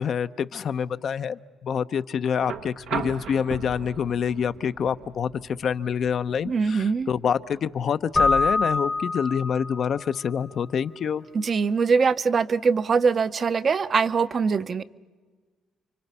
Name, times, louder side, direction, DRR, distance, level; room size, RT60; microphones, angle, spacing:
voice 1, 0.0-11.2, left 7 dB, 60° left, 11 dB, 0.7 m, -27 dB
sound 1, 2.4-10.5 11.9-12.0, right 7 dB, 80° right, 1.1 m, -39 dB
voice 2, 6.5-7.1 11.3-14.8, right 5 dB, 45° right, 13 dB, 0.8 m, -22 dB
Keyboard (musical), 8.1-10.0, left 3 dB, 20° left, 1.0 m, -24 dB
30.0 x 24.5 x 5.6 m, 1.4 s
cardioid pair, 90°, 0 cm